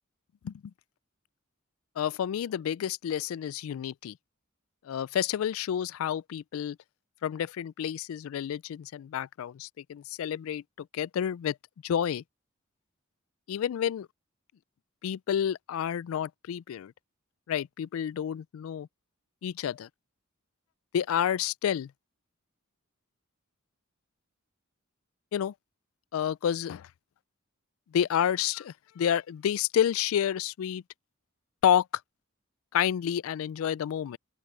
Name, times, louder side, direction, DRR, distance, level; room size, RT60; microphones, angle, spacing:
voice 1, 2.0-4.2 4.9-6.8 7.2-11.6 11.8-12.2 13.5-14.1 15.0-16.9 17.5-18.9 19.4-19.9 20.9-21.9 25.3-25.5 26.1-26.9 27.9-30.8 31.6-31.9 32.7-34.2, left 9 dB, 80° left, 0.3 m, -29 dB
open air
head